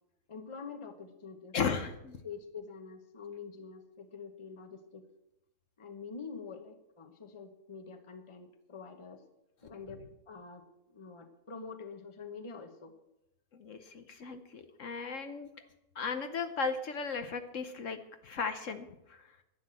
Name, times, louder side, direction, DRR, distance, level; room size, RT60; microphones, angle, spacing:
voice 1, 0.3-1.8 2.2-5.1 5.8-9.2 9.6-12.9 15.5-15.7, left 5 dB, 25° left, 8 dB, 1.1 m, -46 dB
voice 2, 1.5-2.2 13.5-15.5 16.0-19.2, left 5 dB, 60° left, 8 dB, 1.2 m, -36 dB
11.5 x 9.6 x 7.5 m, 0.88 s
omnidirectional pair, 1.5 m